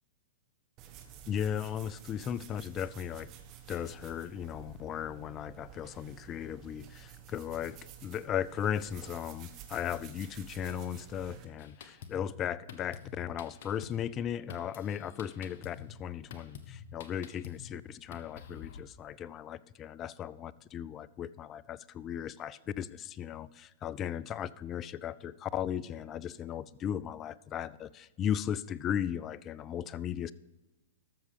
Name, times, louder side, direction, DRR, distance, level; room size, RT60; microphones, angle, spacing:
sound 1, 0.8-11.5, right 9 dB, 35° right, 1.4 m, -51 dB
voice 1, 1.3-3.3 3.7-30.3, left 9 dB, 30° left, 18 dB, 0.4 m, -36 dB
Drum kit, 11.6-18.8, left 7 dB, 60° left, 1.2 m, -49 dB
13.0 x 6.7 x 4.9 m, 1.1 s
hypercardioid pair, 120°, 0 cm